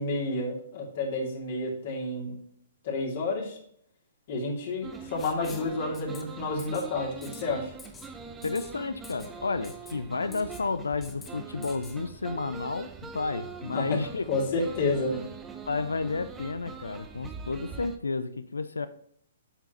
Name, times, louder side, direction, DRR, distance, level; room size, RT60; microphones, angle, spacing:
voice 1, 0.0-2.4 2.8-3.6 4.3-7.7 13.7-14.0 14.3-15.2, left 2 dB, 45° left, -2 dB, 2.9 m, -30 dB
sound 1, 4.8-18.0, right 5 dB, 15° right, 0.9 m, -43 dB
Writing, 5.2-5.7 5.9-6.2 6.6-6.9 7.2-7.4 7.8-8.1 8.4-8.7 9.0-9.3 9.6-9.9 10.3-10.6 11.0-11.3 11.6-12.0, left 4 dB, 10° left, 1.1 m, -47 dB
voice 2, 8.4-14.2 15.7-18.9, left 4 dB, 70° left, 13 dB, 0.6 m, -32 dB
8.9 x 7.2 x 3.1 m, 0.65 s
figure-of-eight pair, 120°, 0 cm